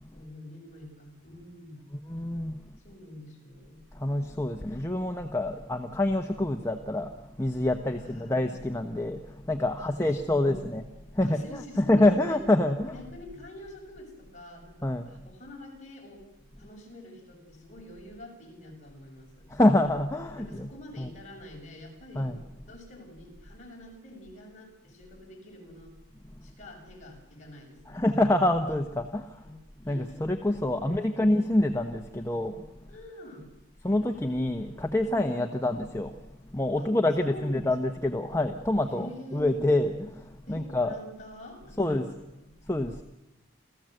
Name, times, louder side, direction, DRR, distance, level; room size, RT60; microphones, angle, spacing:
voice 1, 0.1-1.8 2.7-3.8 8.0-8.5 9.8-10.7 11.2-12.4 12.8-16.3 16.6-19.5 20.4-22.3 22.7-25.9 26.4-28.2 29.1-29.6 29.8-30.2 30.7-31.3 32.9-33.5 36.8-38.0 38.8-39.6 40.5-42.5, left 1 dB, 35° left, 0 dB, 6.4 m, -47 dB
voice 2, 2.1-2.6 3.9-10.8 11.1-12.9 14.8-15.1 19.5-20.7 21.0-21.1 22.1-22.4 27.9-29.4 29.8-32.7 33.8-36.2 36.5-40.9 41.8-42.1 42.7-43.0, left 1 dB, 15° left, 4 dB, 1.0 m, -26 dB
28.0 x 15.0 x 7.8 m, 0.94 s
head